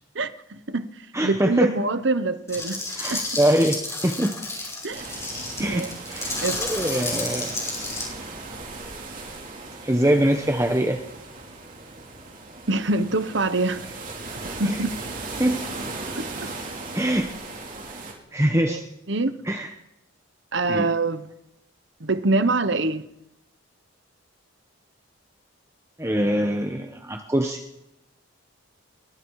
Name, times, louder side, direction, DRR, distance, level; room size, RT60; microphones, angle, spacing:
voice 1, 0.1-0.9 1.2-2.8 3.1-3.2 4.8-5.1 5.6-5.9 6.4-6.6 12.7-13.8 14.4-14.9 16.1-16.5 18.6-18.8 19.1-19.4 20.5-21.3 22.0-23.0, right 3 dB, 60° right, 1.2 m, -25 dB
voice 2, 1.1-1.7 2.9-3.8 4.0-4.3 5.6-7.5 9.8-11.0 14.6-14.8 15.4-15.6 16.9-17.3 18.3-18.8 19.4-19.7 20.7-20.9 26.0-27.6, right 1 dB, 15° right, 1.2 m, -23 dB
sound 1, 2.5-8.1, left 2 dB, 15° left, 5.6 m, -31 dB
sound 2, 4.9-18.1, right 3 dB, 40° right, 4.9 m, -37 dB
23.0 x 23.0 x 4.9 m
head